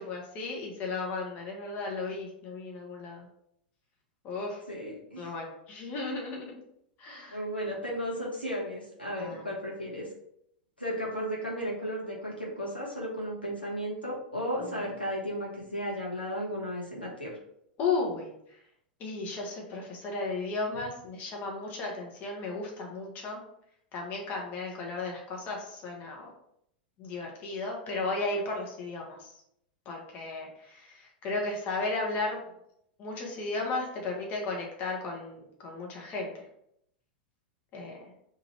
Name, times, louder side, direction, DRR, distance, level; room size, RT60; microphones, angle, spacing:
voice 1, 0.0-3.3 4.2-4.6 5.2-6.6 7.0-7.4 9.2-9.4 17.8-18.3 19.0-23.4 23.9-26.2 27.0-29.3 29.9-32.4 33.0-36.3 37.7-38.0, left 3 dB, 35° left, -1 dB, 0.9 m, -34 dB
voice 2, 4.7-5.3 7.3-10.1 10.8-17.3, equal, 90° left, -5 dB, 1.1 m, -34 dB
3.0 x 2.5 x 4.3 m, 0.74 s
figure-of-eight pair, 95°, 5 cm